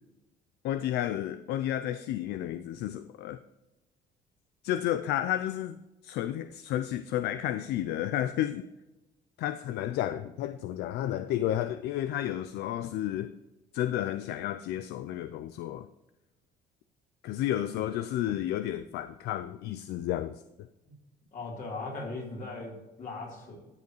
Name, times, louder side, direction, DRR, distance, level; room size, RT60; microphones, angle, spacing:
voice 1, 0.6-3.4 4.6-5.8 6.0-8.6 9.4-13.3 13.7-15.9 17.2-20.4, left 12 dB, 75° left, 11 dB, 0.4 m, -31 dB
voice 2, 21.3-22.7 23.0-23.6, left 3 dB, 50° left, -2 dB, 3.6 m, -38 dB
13.0 x 7.1 x 3.1 m, 1.0 s
cardioid pair, 110°, 17 cm